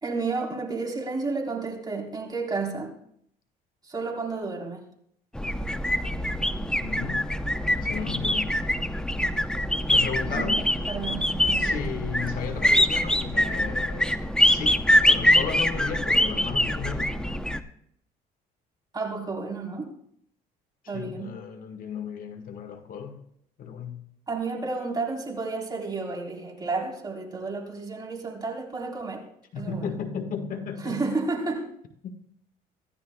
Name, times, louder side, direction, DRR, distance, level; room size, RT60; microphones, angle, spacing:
voice 1, 0.0-2.9 3.8-4.9 10.3-11.8 18.9-19.9 20.9-21.4 24.3-29.3 29.5-29.9 30.8-31.7, right 3 dB, 25° right, 0 dB, 3.5 m, -31 dB
sound 1, 5.3-17.6, left 1 dB, 5° left, 0.7 m, -24 dB
voice 2, 6.8-7.3 7.8-8.5 9.9-10.6 11.6-17.2 20.8-23.2 23.6-24.0 29.5-31.0 32.0-32.2, left 6 dB, 55° left, 6 dB, 1.5 m, -35 dB
24.5 x 14.5 x 2.2 m, 0.69 s
cardioid pair, 110°, 17 cm